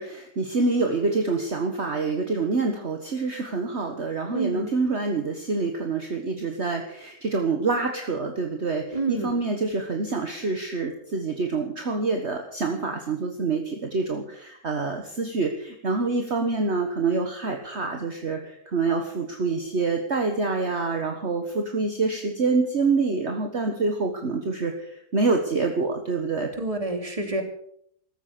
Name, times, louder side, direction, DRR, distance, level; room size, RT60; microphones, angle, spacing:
voice 1, 0.0-26.5, right 3 dB, 45° right, 4 dB, 1.7 m, -26 dB
voice 2, 4.3-4.7 8.9-9.3 26.5-27.4, right 2 dB, 20° right, 5 dB, 2.7 m, -28 dB
15.0 x 13.0 x 6.8 m, 0.67 s
omnidirectional pair, 1.6 m